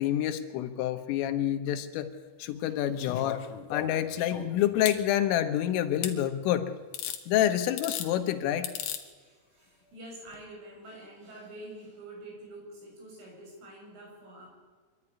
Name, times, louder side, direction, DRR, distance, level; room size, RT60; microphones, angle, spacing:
voice 1, 0.0-2.1 2.4-3.4 3.7-6.7 7.3-8.7, left 11 dB, 85° left, 8 dB, 3.9 m, -28 dB
sound 1, 3.0-5.0 6.0-6.2 6.9-7.2 7.7-8.1 8.6-9.0 10.3-10.4, left 9 dB, 65° left, 3.0 m, -36 dB
voice 2, 9.1-14.5, right 1 dB, 75° right, -1 dB, 9.5 m, -47 dB
24.0 x 13.0 x 9.8 m, 1.5 s
omnidirectional pair, 5.7 m